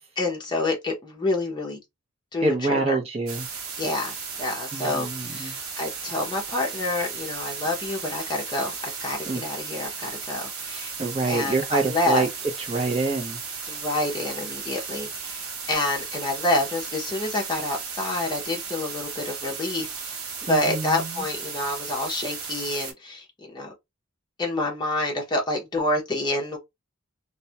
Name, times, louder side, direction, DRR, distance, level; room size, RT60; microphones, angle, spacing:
voice 1, 0.2-1.8 2.3-3.0 3.8-10.9 11.3-12.3 13.7-23.7 24.4-26.6, left 2 dB, 20° left, 0.7 m, -28 dB
voice 2, 2.4-3.5 4.7-5.6 9.3-9.4 11.0-12.3 12.6-13.4 20.4-21.2, right 3 dB, 30° right, 0.6 m, -26 dB
sound 1, 3.3-22.9, right 5 dB, 80° right, 0.8 m, -35 dB
2.3 x 2.1 x 2.7 m
head